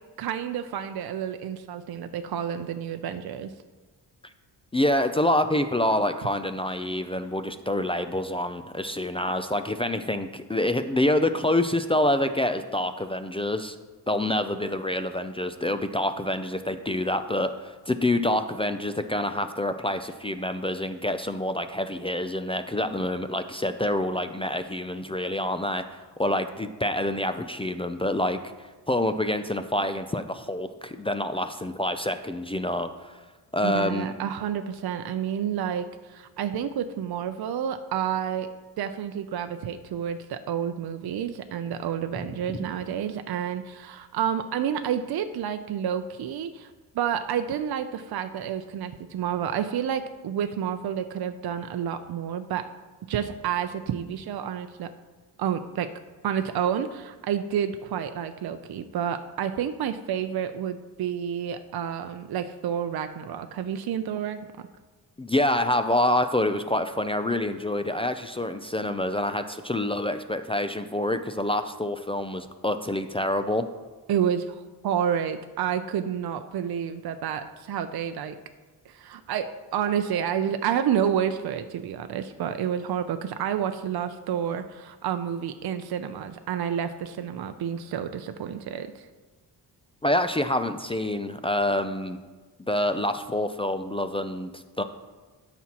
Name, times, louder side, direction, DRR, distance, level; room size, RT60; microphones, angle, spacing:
voice 1, 0.2-3.5 33.6-38.5 38.8-52.6 53.1-54.9 55.4-55.9 56.2-64.7 74.1-78.4 78.9-89.1, right 9 dB, 60° right, 8 dB, 0.6 m, -29 dB
voice 2, 4.7-13.8 14.1-25.8 26.2-28.4 28.9-33.1 33.5-34.1 65.2-73.6 90.0-92.2 92.7-94.8, left 1 dB, 15° left, 9 dB, 0.3 m, -27 dB
13.0 x 6.0 x 2.9 m, 1.3 s
cardioid pair, 90°, 42 cm